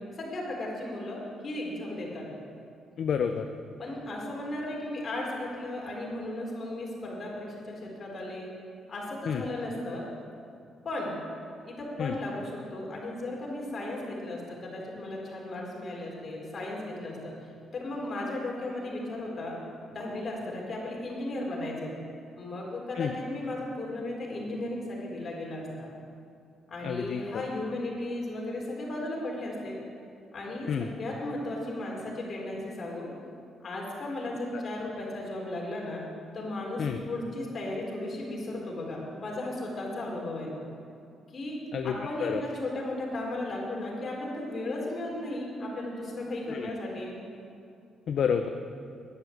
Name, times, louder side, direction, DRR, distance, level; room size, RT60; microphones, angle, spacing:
voice 1, 0.2-2.3 3.8-8.5 8.9-10.0 10.8-11.2 11.6-17.3 17.7-19.6 19.9-21.9 22.4-25.9 26.7-29.7 30.3-33.1 33.6-36.0 36.3-40.5 41.3-41.6 41.8-47.2, left 1 dB, 45° left, -3 dB, 4.1 m, -35 dB
voice 2, 3.0-3.5 9.3-9.5 12.0-12.2 23.0-23.1 26.8-27.4 30.7-30.9 34.5-34.6 36.8-37.0 41.7-42.4 46.5-46.7 48.1-48.5, left 7 dB, 65° left, 6 dB, 0.6 m, -29 dB
11.0 x 9.9 x 7.9 m, 2.5 s
cardioid pair, 90°, 0 cm